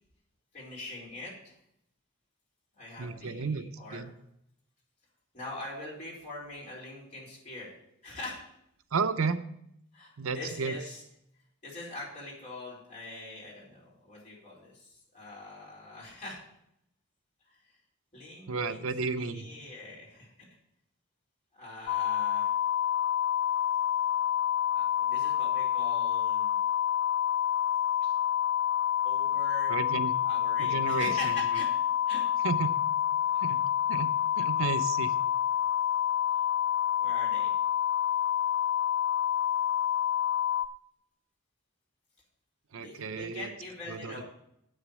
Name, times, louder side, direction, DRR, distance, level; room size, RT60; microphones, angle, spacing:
voice 1, 0.5-1.5 2.8-4.1 5.3-7.7 8.0-8.4 9.9-11.0 11.6-16.4 17.4-17.8 18.1-18.9 19.1-20.5 21.5-22.5 24.7-26.6 28.0-28.1 29.0-29.8 30.2-31.7 32.1-32.3 33.4-33.6 36.3-36.5 37.0-37.5 42.7-44.2, left 2 dB, 35° left, -5 dB, 4.7 m, -43 dB
voice 2, 3.0-4.1 8.9-9.4 10.2-10.7 18.5-19.5 29.7-30.1 30.6-31.3 32.4-32.7 33.4-33.6 33.9-34.1 34.4-35.1 42.7-43.5 43.9-44.2, right 4 dB, 75° right, 11 dB, 0.6 m, -32 dB
sound 1, 21.9-40.7, left 10 dB, 55° left, 0.5 m, -28 dB
8.3 x 6.6 x 7.1 m, 0.76 s
head